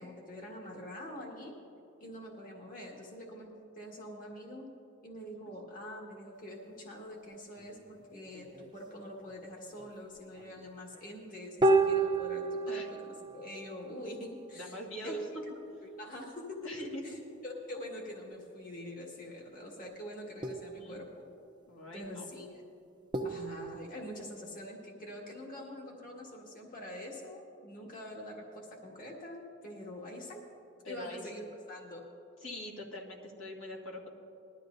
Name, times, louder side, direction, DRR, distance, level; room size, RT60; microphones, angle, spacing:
voice 1, 0.0-1.5 2.0-4.6 5.0-15.4 15.8-21.3 21.9-22.6 23.2-30.4 30.8-32.0, left 1 dB, 40° left, -1 dB, 1.8 m, -45 dB
sound 1, 7.6-8.8 9.3-9.5 9.7-11.0 11.6-14.7 15.3-16.2 19.2-19.3 20.4-21.0 22.0-22.1 23.1-24.3, right 3 dB, 20° right, 0.6 m, -33 dB
voice 2, 14.5-15.2 16.6-17.2 20.8-21.0 21.7-22.3 30.8-31.2 32.4-34.1, left 1 dB, 70° left, -3 dB, 1.9 m, -43 dB
20.5 x 12.5 x 2.6 m, 2.8 s
head